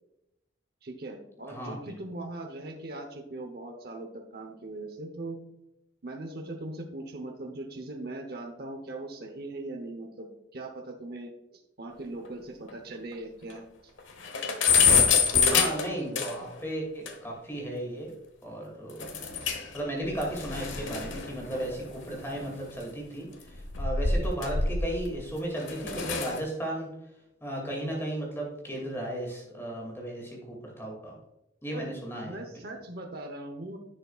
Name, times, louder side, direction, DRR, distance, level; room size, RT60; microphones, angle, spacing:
voice 1, 0.8-5.4 6.0-13.6 14.8-15.0 15.3-15.7 16.4-16.5 31.7-31.9 32.2-33.8, right 2 dB, 55° right, 3 dB, 1.0 m, -40 dB
sound 1, 12.2-12.3 12.7-12.8 13.1-13.2 13.6-13.7 14.0-16.6 17.1-17.2 19.0-19.8 20.0-22.7 23.5-25.1 25.6-26.4, left 6 dB, 90° left, 1.1 m, -26 dB
voice 2, 15.5-18.1 18.4-19.0 19.7-26.9 27.4-31.2 31.6-32.6, right 1 dB, 15° left, -1 dB, 2.3 m, -35 dB
11.0 x 6.9 x 2.4 m, 0.90 s
head